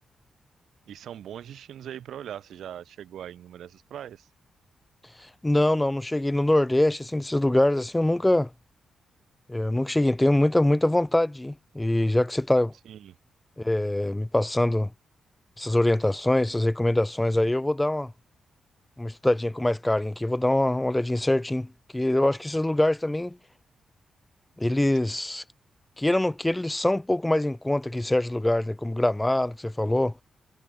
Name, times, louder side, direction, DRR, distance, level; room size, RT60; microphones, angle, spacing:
voice 1, 0.9-4.3 12.8-13.1, right 10 dB, 80° right, 2.8 m, -40 dB
voice 2, 5.4-8.5 9.5-12.7 13.6-14.9 15.6-18.1 19.0-23.4 24.6-25.4 26.0-30.1, left 1 dB, 10° left, 0.4 m, -24 dB
wide cardioid pair, 160°, 0 cm